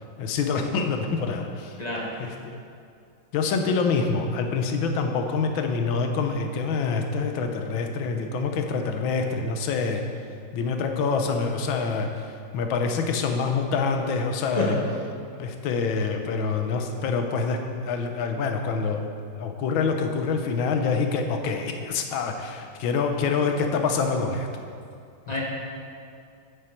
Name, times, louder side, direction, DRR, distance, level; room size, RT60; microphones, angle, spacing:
voice 1, 0.2-1.7 2.2-2.5 3.3-10.0 10.5-12.1 12.5-14.8 15.4-19.1 19.4-24.5 25.3-25.4, left 4 dB, 75° left, 5 dB, 1.5 m, -26 dB
voice 2, 1.8-2.1 14.5-14.9 25.3-25.4, left 2 dB, 30° left, -4 dB, 0.8 m, -27 dB
8.5 x 7.0 x 4.4 m, 2.4 s
omnidirectional pair, 2.2 m